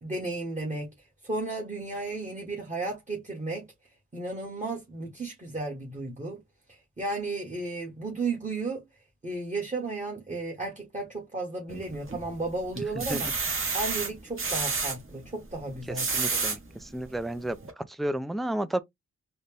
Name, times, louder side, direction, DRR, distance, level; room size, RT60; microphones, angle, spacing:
voice 1, 0.0-0.9 1.2-3.7 4.1-6.4 6.7-8.8 9.2-13.3 13.7-16.4, right 3 dB, 20° right, 1.4 m, -34 dB
sound 1, 11.7-12.3 12.8-15.0 15.7-16.6 17.2-17.3 17.6-17.7, right 4 dB, 40° right, 1.3 m, -29 dB
voice 2, 16.1-17.6 18.0-18.8, right 1 dB, ahead, 0.3 m, -31 dB
4.0 x 2.2 x 3.3 m
cardioid pair, 100°, 33 cm